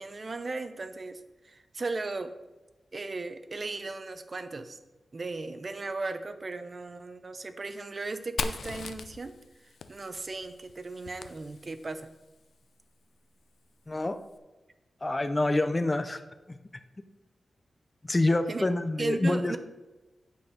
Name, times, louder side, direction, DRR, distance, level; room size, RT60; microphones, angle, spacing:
voice 1, 0.0-2.3 2.9-4.8 5.1-9.4 9.9-12.1 18.5-18.7 19.0-19.6, right 3 dB, 35° right, 9 dB, 0.7 m, -36 dB
Fire, 8.4-12.1, left 4 dB, 70° left, 0.5 m, -39 dB
voice 2, 13.9-14.2 15.0-16.2 16.5-16.6 18.1-19.6, left 2 dB, 20° left, 9 dB, 0.5 m, -26 dB
8.5 x 6.3 x 5.0 m, 1.1 s
wide cardioid pair, 155°, 0 cm